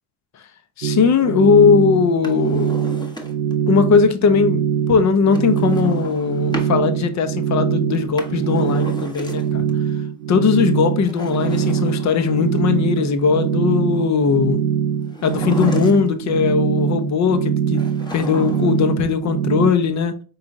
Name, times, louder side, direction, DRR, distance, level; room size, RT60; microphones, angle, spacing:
voice 1, 0.8-2.7 3.7-9.7 10.3-14.6 15.2-17.8 18.1-20.2, left 6 dB, 35° left, 0.8 m, -18 dB
sound 1, 0.8-19.7, right 8 dB, 75° right, 0.5 m, -23 dB
Drawer open or close, 2.1-3.6 5.3-6.8 7.9-9.7 11.0-12.6 15.1-16.3 17.7-18.9 19.1-19.2, left 1 dB, 10° left, 1.0 m, -34 dB
4.7 x 3.9 x 2.6 m
figure-of-eight pair, 55°, 47 cm